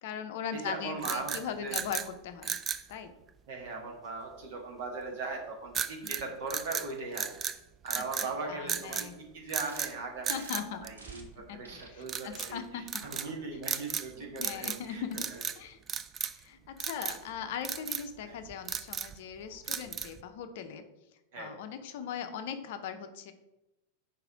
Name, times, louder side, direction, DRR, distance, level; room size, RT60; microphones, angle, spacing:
voice 1, 0.0-2.6 2.9-3.1 6.0-6.2 8.2-9.1 10.3-10.9 11.5-11.6 11.9-13.0 14.4-15.2 15.6-15.8 16.3-20.8 21.4-23.3, left 8 dB, 50° left, 8 dB, 0.6 m, -39 dB
voice 2, 0.5-1.8 3.5-7.3 7.8-15.0 15.3-15.4 18.2-18.4 19.6-19.8 21.3-21.5, right 3 dB, 50° right, 0 dB, 1.6 m, -39 dB
sound 1, 1.0-2.1 2.4-2.9 5.7-6.2 6.5-7.6 7.9-8.3 8.7-9.1 9.5-9.9 10.2-11.4 12.1-12.5 12.9-13.3 13.6-14.1 14.4-14.9 15.1-15.6 15.9-16.4 16.8-17.2 17.6-18.1 18.5-19.2 19.7-20.2, right 7 dB, 25° right, 0.4 m, -35 dB
sound 2, 9.7-9.9 10.3-10.6 11.0-11.2 11.6-11.9 12.3-12.6 13.0-13.3 13.8-14.2, right 3 dB, 75° right, 1.0 m, -50 dB
4.8 x 4.7 x 4.8 m, 0.96 s
figure-of-eight pair, 90°, 0 cm